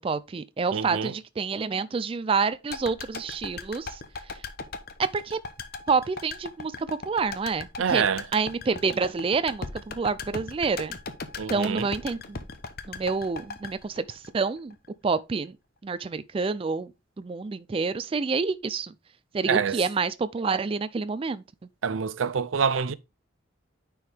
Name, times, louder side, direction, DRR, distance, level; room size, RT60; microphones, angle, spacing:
voice 1, 0.0-4.0 5.0-5.4 5.9-8.0 8.3-11.0 11.5-12.4 12.9-14.8 15.0-15.5 15.8-16.9 17.2-18.9 19.3-21.4, right 4 dB, 30° right, 0.3 m, -28 dB
voice 2, 0.7-1.1 7.8-8.2 11.4-11.9 19.5-19.8 21.8-22.9, right 6 dB, 85° right, 0.5 m, -26 dB
sound 1, 2.7-14.9 15.2-15.3, left 4 dB, 50° left, 0.8 m, -38 dB
9.5 x 4.7 x 3.4 m
head